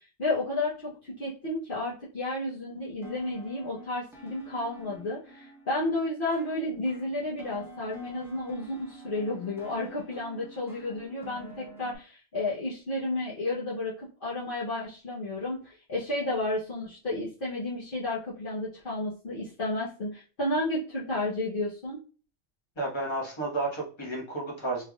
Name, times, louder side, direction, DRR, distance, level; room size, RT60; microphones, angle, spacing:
voice 1, 0.0-22.0, left 2 dB, 50° left, -8 dB, 1.0 m, -32 dB
sound 1, 3.0-11.9, right 2 dB, 5° right, 0.5 m, -48 dB
voice 2, 22.8-24.8, right 2 dB, 25° left, -3 dB, 1.3 m, -32 dB
3.4 x 3.2 x 2.3 m, 0.37 s
omnidirectional pair, 1.3 m